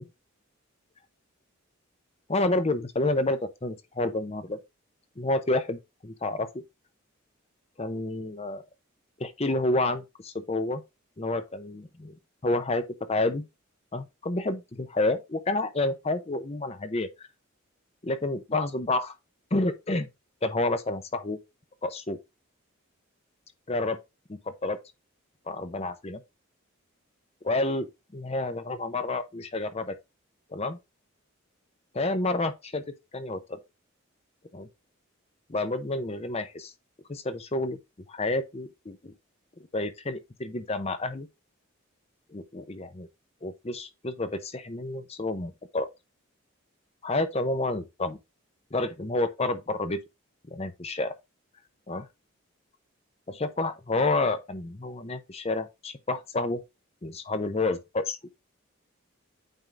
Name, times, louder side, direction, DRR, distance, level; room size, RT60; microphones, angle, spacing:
voice 1, 2.3-4.6 5.2-6.5 7.8-8.6 9.2-10.8 11.2-12.1 12.4-13.4 13.9-17.3 18.0-19.2 19.5-20.1 20.4-21.4 21.8-22.2 23.7-24.0 24.3-24.8 25.5-26.2 27.4-27.9 28.1-30.0 30.5-30.8 31.9-32.8 33.1-33.6 34.5-34.7 35.5-36.7 37.1-37.8 38.1-39.1 39.7-41.3 42.3-43.1 43.4-45.9 47.0-48.2 48.7-50.0 50.5-51.1 51.9-52.1 53.3-56.6 57.0-58.2, left 2 dB, 30° left, 0.7 m, -29 dB
9.1 x 3.6 x 3.8 m
head